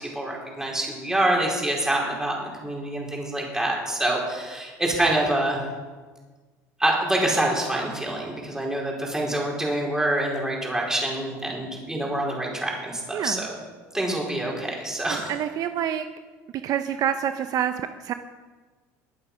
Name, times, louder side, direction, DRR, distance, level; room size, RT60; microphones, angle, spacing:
voice 1, 0.0-5.6 6.8-13.5 13.9-15.3, right 1 dB, 5° right, -2 dB, 4.6 m, -26 dB
voice 2, 13.1-13.5 15.1-16.0 16.6-18.1, right 9 dB, 50° right, 9 dB, 0.7 m, -27 dB
21.5 x 8.8 x 5.6 m, 1.4 s
supercardioid pair, 115°, 8 cm